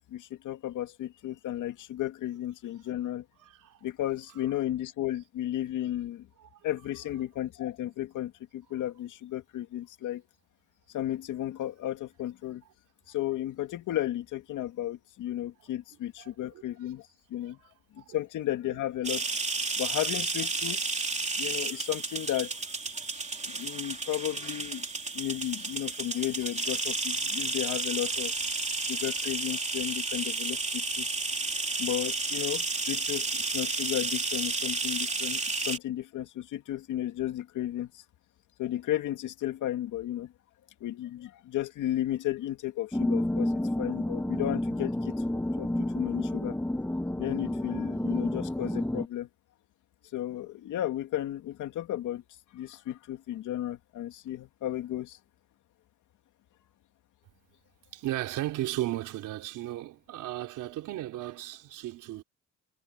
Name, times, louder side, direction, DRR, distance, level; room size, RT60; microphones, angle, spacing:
voice 1, 0.1-3.2 3.8-6.3 6.6-10.2 10.9-12.6 13.1-17.6 17.9-19.2 19.8-20.8 21.4-22.5 23.5-24.8 25.1-28.3 28.9-31.1 31.8-38.0 38.6-40.3 40.8-43.5 43.8-45.1 45.6-46.6 47.2-49.3 50.1-52.2 52.5-55.2, left 13 dB, 80° left, 2.4 m, -34 dB
voice 2, 3.4-3.8 6.4-6.5 16.2-16.3 17.4-17.6 18.0-18.2 57.9-62.2, right 14 dB, 90° right, 3.5 m, -35 dB
sound 1, 19.0-35.8, right 3 dB, 25° right, 3.1 m, -32 dB
sound 2, 42.9-49.1, left 1 dB, 5° left, 1.3 m, -30 dB
cardioid pair, 90°, 30 cm